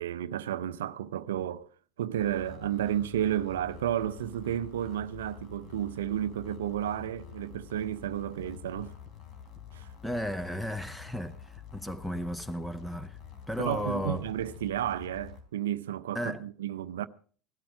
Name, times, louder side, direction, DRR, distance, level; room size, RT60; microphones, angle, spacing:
voice 1, 0.0-1.7 2.0-8.9 9.7-9.9 13.6-17.1, right 11 dB, 75° right, 0.6 m, -32 dB
sound 1, 2.1-15.4, left 9 dB, 45° left, 3.9 m, -48 dB
voice 2, 10.0-13.2 13.5-14.3 16.1-16.4, equal, 5° left, 1.1 m, -34 dB
17.0 x 12.5 x 4.8 m
hypercardioid pair, 75°, 0 cm